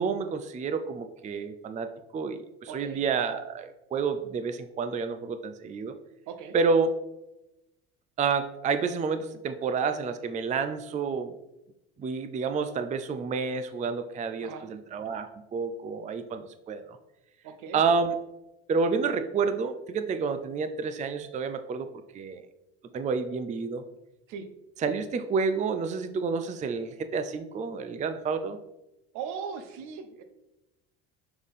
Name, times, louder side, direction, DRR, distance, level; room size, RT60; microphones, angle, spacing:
voice 1, 0.0-5.9 6.5-6.9 8.2-11.3 12.0-17.0 17.7-18.2 18.7-21.9 22.1-22.4 22.9-23.8 24.8-28.6, right 5 dB, 25° right, 9 dB, 0.4 m, -29 dB
voice 2, 2.7-3.0 6.3-6.6 14.4-14.7 17.4-17.8 24.3-24.5 29.1-30.2, right 6 dB, 65° right, 8 dB, 0.9 m, -39 dB
6.7 x 3.5 x 4.1 m, 0.95 s
supercardioid pair, 80°, 32 cm